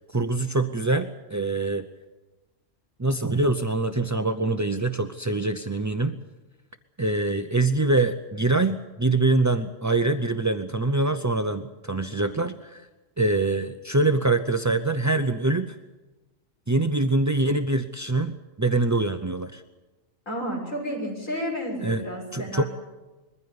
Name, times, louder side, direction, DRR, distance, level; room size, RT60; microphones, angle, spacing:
voice 1, 0.1-1.8 3.0-6.2 7.0-12.9 13.2-15.8 16.7-19.6 21.8-22.0 22.3-22.6, right 2 dB, 25° right, 8 dB, 0.4 m, -24 dB
voice 2, 20.3-22.6, equal, 70° left, -1 dB, 6.6 m, -31 dB
22.0 x 15.0 x 9.6 m, 1.2 s
omnidirectional pair, 1.4 m